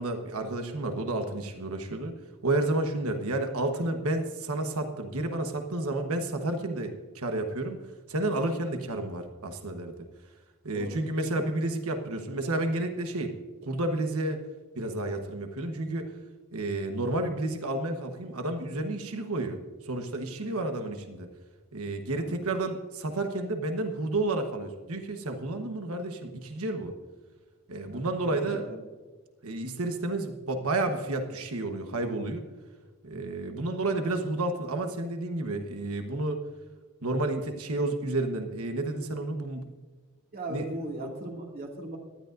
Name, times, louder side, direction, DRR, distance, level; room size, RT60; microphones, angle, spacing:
voice 1, 0.0-2.1 2.4-7.8 8.1-9.9 10.6-13.3 13.6-14.4 14.7-16.1 16.5-21.3 21.7-26.9 27.7-28.6 29.4-32.4 33.0-36.4 37.0-39.7 40.5-40.7, right 2 dB, 80° right, 5 dB, 1.2 m, -31 dB
voice 2, 27.9-28.9 40.3-42.0, right 1 dB, 45° right, 0 dB, 2.4 m, -38 dB
18.5 x 13.0 x 2.6 m, 1.3 s
head